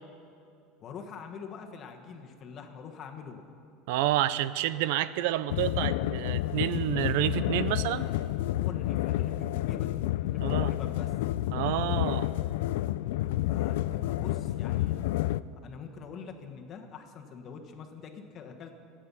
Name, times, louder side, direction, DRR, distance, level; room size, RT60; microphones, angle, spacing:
voice 1, 0.8-3.4 8.5-11.2 13.5-15.0 15.6-18.7, left 6 dB, 30° left, 4 dB, 1.3 m, -44 dB
voice 2, 3.9-8.1 10.4-10.7 11.5-12.3, right 13 dB, 70° right, 16 dB, 0.5 m, -29 dB
sound 1, 5.5-15.4, left 15 dB, 80° left, 0.3 m, -30 dB
26.0 x 8.8 x 5.5 m, 2.5 s
cardioid pair, 170°, 0 cm